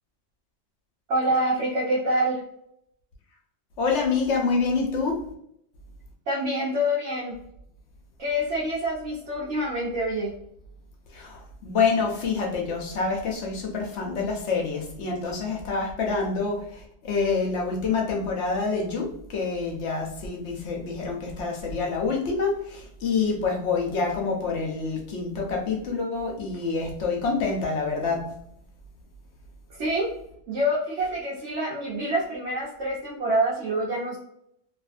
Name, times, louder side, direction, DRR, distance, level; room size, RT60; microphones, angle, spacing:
voice 1, 1.1-2.4 6.3-7.4 8.2-10.3 29.8-30.1 30.5-34.2, right 1 dB, 75° right, -6 dB, 1.1 m, -26 dB
voice 2, 3.8-5.2 11.1-16.6 17.0-28.2, left 4 dB, 75° left, 0 dB, 1.0 m, -27 dB
2.7 x 2.5 x 2.4 m, 0.73 s
omnidirectional pair, 1.2 m